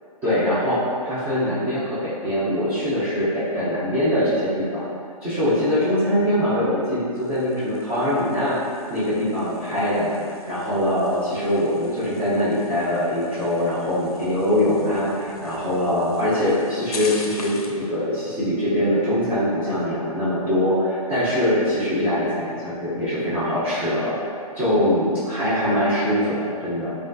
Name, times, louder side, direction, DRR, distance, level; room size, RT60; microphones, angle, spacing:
voice 1, 0.2-4.8 5.2-8.6 8.9-10.2 10.5-24.1 24.6-27.0, left 1 dB, 10° right, -12 dB, 0.4 m, -23 dB
sound 1, 7.1-17.9, left 3 dB, 75° left, 0.4 m, -42 dB
3.2 x 2.3 x 2.5 m, 2.3 s
hypercardioid pair, 140°, 19 cm